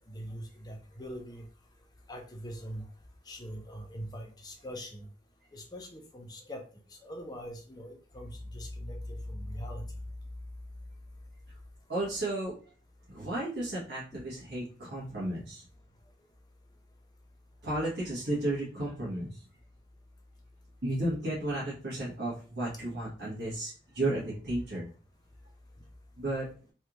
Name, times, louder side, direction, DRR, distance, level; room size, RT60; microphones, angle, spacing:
voice 1, 0.0-1.4 2.1-2.8 3.3-5.1 5.5-6.6 7.0-9.8, equal, 20° left, 3 dB, 0.6 m, -41 dB
voice 2, 11.9-12.5 13.1-15.6 17.6-19.4 20.8-24.9 26.2-26.5, right 1 dB, 60° right, -7 dB, 1.2 m, -33 dB
3.3 x 2.4 x 2.9 m, 0.39 s
head